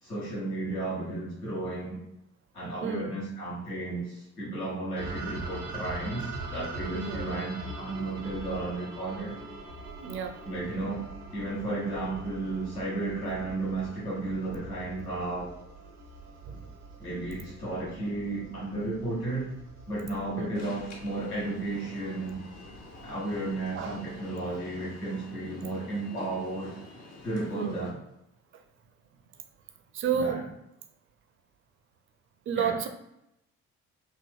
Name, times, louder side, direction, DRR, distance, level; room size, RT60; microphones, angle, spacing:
voice 1, 0.0-2.0 2.5-9.4 10.5-15.5 17.0-19.5 19.9-22.4 23.0-26.8 27.2-28.0 30.1-30.4 32.5-32.8, right 2 dB, 85° left, -8 dB, 1.1 m, -33 dB
voice 2, 2.8-3.2 6.9-7.3 10.0-10.4 16.5-16.6 20.4-20.8 23.7-24.0 27.5-27.9 29.9-30.5 32.5-32.9, right 7 dB, 30° right, 7 dB, 0.4 m, -31 dB
sound 1, 5.0-24.9, right 2 dB, 85° right, 0.7 m, -43 dB
Alarm, 20.5-27.9, left 2 dB, 60° left, 1.1 m, -48 dB
4.2 x 2.9 x 2.3 m, 0.83 s
figure-of-eight pair, 45°, 43 cm